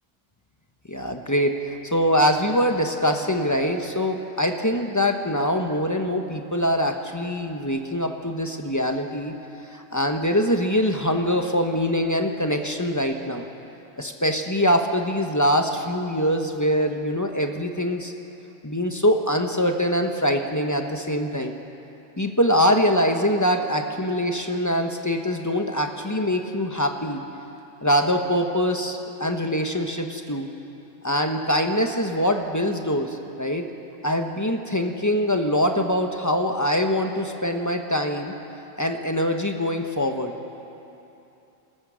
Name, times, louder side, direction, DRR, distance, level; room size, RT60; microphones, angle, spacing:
voice 1, 0.9-9.3 9.7-13.5 14.0-18.1 18.6-21.5 22.2-27.2 27.8-30.5 31.0-33.6 34.0-38.3 38.8-40.3, equal, 15° left, 4 dB, 1.1 m, -23 dB
28.0 x 14.5 x 6.4 m, 2.9 s
omnidirectional pair, 1.4 m